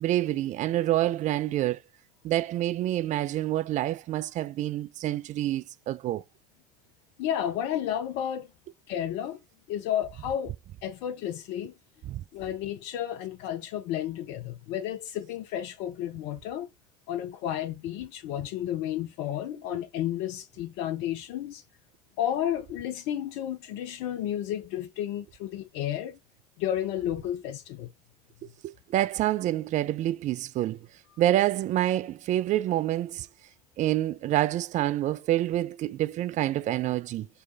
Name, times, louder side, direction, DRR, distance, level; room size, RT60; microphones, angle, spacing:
voice 1, 0.0-1.8 2.2-6.2 12.1-12.2 28.6-30.8 31.2-33.3 33.8-37.3, right 14 dB, 35° right, 0.4 m, -27 dB
voice 2, 7.2-8.5 8.9-9.4 9.7-10.6 10.8-11.7 12.3-16.7 17.1-21.6 22.2-26.2 26.6-27.9, left 11 dB, 55° left, 0.6 m, -32 dB
3.4 x 3.2 x 4.3 m
hypercardioid pair, 75°, 20 cm